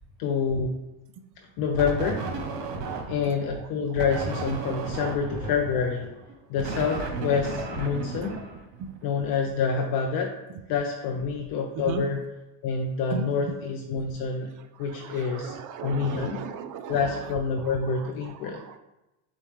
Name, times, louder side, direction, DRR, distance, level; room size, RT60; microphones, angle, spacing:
voice 1, 0.2-0.8 1.6-2.2 3.1-6.1 6.5-8.4 9.0-10.4 10.7-12.2 12.6-14.5 14.8-15.5 15.8-16.4 16.9-18.6, left 5 dB, 50° left, 2 dB, 0.6 m, -27 dB
sound 1, 1.7-3.4 4.0-9.1, right 4 dB, 80° right, 0.9 m, -34 dB
voice 2, 2.9-3.4 11.9-12.0 13.1-13.3 15.0-17.0 17.6-17.7 18.4-18.8, right 8 dB, 45° right, 9 dB, 0.4 m, -36 dB
6.7 x 2.2 x 3.1 m, 0.96 s
supercardioid pair, 105°, 46 cm